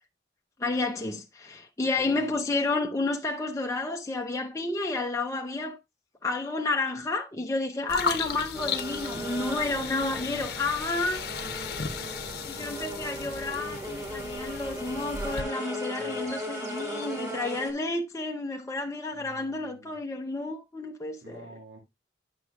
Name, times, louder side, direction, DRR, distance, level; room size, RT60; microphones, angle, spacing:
voice 1, 0.6-5.8 6.2-11.2 12.4-21.4, left 3 dB, 20° left, 0.6 m, -31 dB
voice 2, 2.0-2.3 9.7-10.6 11.0-13.0 16.0-16.4 19.1-20.0 21.2-21.8, right 1 dB, 75° right, 1.6 m, -49 dB
sound 1, 7.9-15.4, left 6 dB, 60° left, 0.8 m, -35 dB
sound 2, 8.5-17.7, equal, 20° right, 1.7 m, -37 dB
Wind instrument woodwind instrument, 9.7-14.3, right 1 dB, 40° right, 2.5 m, -49 dB
9.6 x 6.1 x 2.3 m
head